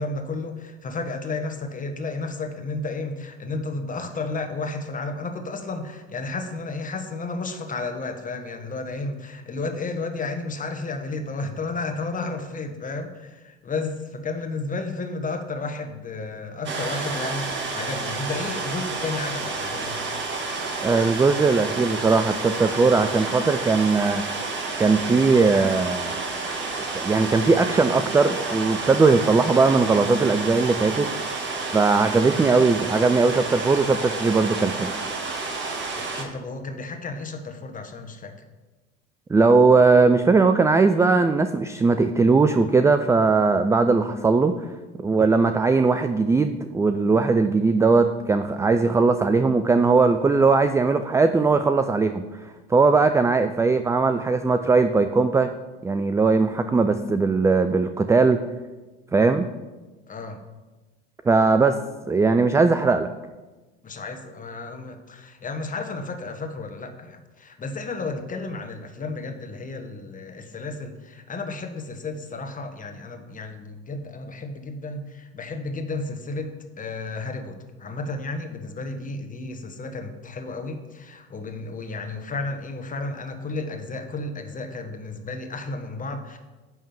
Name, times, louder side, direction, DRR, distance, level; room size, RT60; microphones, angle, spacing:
voice 1, 0.0-20.0 36.0-38.5 60.1-60.4 63.8-86.4, left 3 dB, 25° left, 5 dB, 1.3 m, -32 dB
sound 1, 16.6-36.2, right 3 dB, 35° right, 1.7 m, -30 dB
voice 2, 20.8-24.3 24.8-26.3 27.0-31.5 31.7-34.9 39.3-44.5 45.0-52.2 52.7-55.5 55.8-58.4 59.1-59.5 61.3-61.8 62.1-63.1, right 4 dB, 10° right, 8 dB, 0.3 m, -19 dB
10.5 x 3.7 x 7.1 m, 1.2 s
hypercardioid pair, 80°, 31 cm